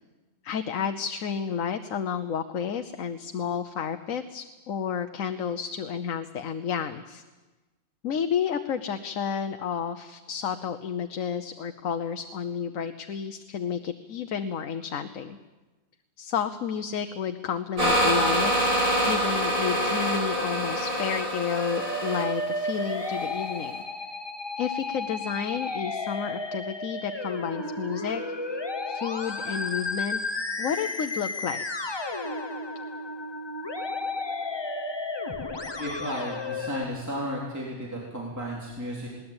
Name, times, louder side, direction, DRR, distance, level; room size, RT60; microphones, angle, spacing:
voice 1, 0.4-7.2 8.0-15.4 16.2-18.7 19.0-23.8 24.6-28.2 28.5-28.6 28.9-30.2 30.6-31.6, left 7 dB, 70° left, 8 dB, 1.3 m, -31 dB
sound 1, 17.8-23.2, right 1 dB, 85° right, 6.4 m, -26 dB
Musical instrument, 18.9-36.8, left 2 dB, 20° left, 1.0 m, -33 dB
voice 2, 35.8-39.1, equal, 10° right, -4 dB, 3.6 m, -33 dB
21.0 x 19.0 x 8.8 m, 1.2 s
omnidirectional pair, 1.5 m